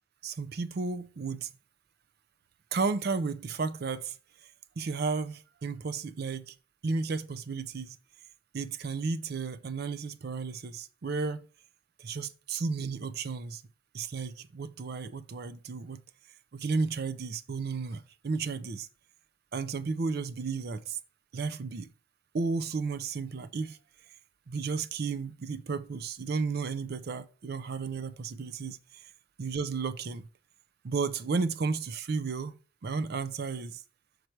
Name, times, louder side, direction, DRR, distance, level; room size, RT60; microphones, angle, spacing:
voice 1, 0.2-1.5 2.7-4.2 4.8-6.6 6.8-8.0 8.5-11.4 12.0-13.6 13.9-16.0 16.5-18.9 19.5-21.0 21.3-21.9 22.3-23.8 24.5-29.0 29.4-30.3 30.8-32.6 32.8-33.8, right 4 dB, 50° right, 0.4 m, -33 dB
6.6 x 4.6 x 4.5 m
head